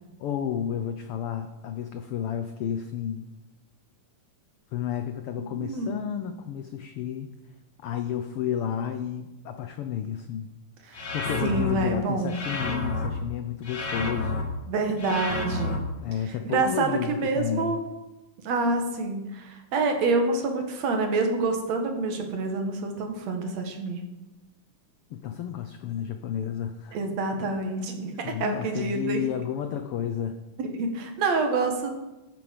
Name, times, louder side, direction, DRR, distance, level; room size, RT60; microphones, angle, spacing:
voice 1, 0.2-3.3 4.7-7.3 7.8-10.5 10.9-14.5 16.0-17.8 25.1-27.0 28.1-30.4, left 9 dB, 85° left, 7 dB, 1.2 m, -31 dB
voice 2, 5.5-6.0 10.9-11.1 11.4-12.4 14.7-15.8 16.5-17.8 18.4-24.0 26.9-29.2 30.6-31.9, right 3 dB, 65° right, 5 dB, 2.6 m, -27 dB
sound 1, 10.9-11.7 12.3-13.1 13.6-14.4 15.0-15.8, left 2 dB, 40° left, 1.9 m, -30 dB
13.0 x 9.5 x 5.2 m, 1.0 s
omnidirectional pair, 3.4 m